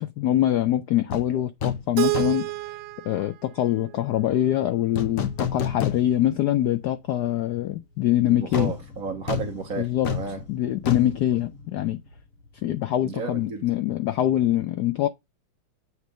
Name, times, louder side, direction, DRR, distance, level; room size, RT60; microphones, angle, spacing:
voice 1, 0.0-2.5 3.0-8.7 9.8-10.1 10.5-12.0 12.6-15.1, left 12 dB, 80° left, 0.9 m, -24 dB
sound 1, 1.1-1.3 1.6-1.9 2.1-2.6 5.0-6.4 6.8-6.9 8.5-12.2 12.4-12.6, left 7 dB, 50° left, 1.1 m, -30 dB
Keyboard (musical), 2.0-4.9, right 20 dB, 85° right, 1.5 m, -31 dB
voice 2, 8.2-10.4 13.0-13.6, right 5 dB, 55° right, 1.1 m, -33 dB
8.2 x 3.2 x 5.1 m
omnidirectional pair, 2.3 m